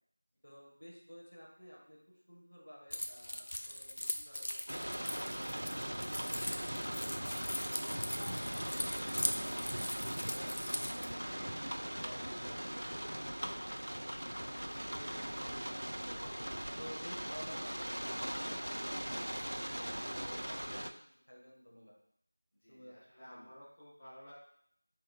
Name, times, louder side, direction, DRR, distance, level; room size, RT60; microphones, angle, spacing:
voice 1, 0.4-2.0 2.3-4.6 8.1-11.7 12.0-14.4 14.9-16.3 16.8-19.3 19.7-21.0 21.3-22.0 22.7-23.0 23.3-23.5, equal, 80° left, -3 dB, 1.3 m, -53 dB
Keys jangling, 2.9-11.1, left 1 dB, 50° left, 0.4 m, -40 dB
sound 1, 4.7-20.9, equal, 75° right, 0.4 m, -40 dB
voice 2, 22.6-24.3, equal, 15° left, -11 dB, 0.8 m, -56 dB
4.4 x 3.6 x 2.3 m, 0.70 s
figure-of-eight pair, 175°, 0 cm